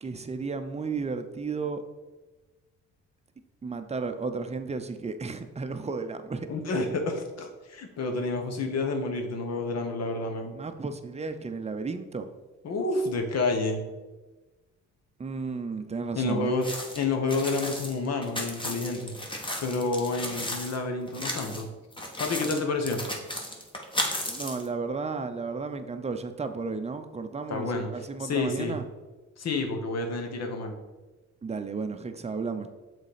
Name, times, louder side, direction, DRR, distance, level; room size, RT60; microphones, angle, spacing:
voice 1, 0.0-1.8 3.6-6.5 10.5-12.3 15.2-16.5 24.3-28.8 31.4-32.7, right 4 dB, 20° right, 8 dB, 0.6 m, -33 dB
voice 2, 6.5-10.5 12.6-13.8 16.1-16.7 16.9-19.1 19.6-21.7 22.2-23.0 27.5-27.9 28.2-28.8 29.4-30.7, left 3 dB, 60° left, 5 dB, 1.2 m, -29 dB
sound 1, 16.6-20.8 21.1-21.6 21.9-24.7, left 1 dB, 15° left, 1.3 m, -34 dB
6.5 x 4.2 x 5.0 m, 1.2 s
cardioid pair, 90°, 30 cm